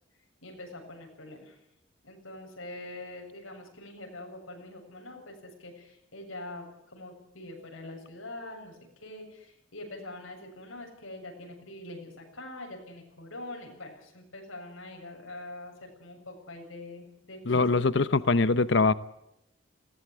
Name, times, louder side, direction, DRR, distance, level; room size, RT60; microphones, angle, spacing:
voice 1, 0.4-1.6 2.0-18.2, left 2 dB, 90° left, 2 dB, 7.4 m, -44 dB
voice 2, 17.5-18.9, left 3 dB, 60° left, 16 dB, 0.8 m, -23 dB
21.0 x 17.5 x 8.4 m, 0.83 s
head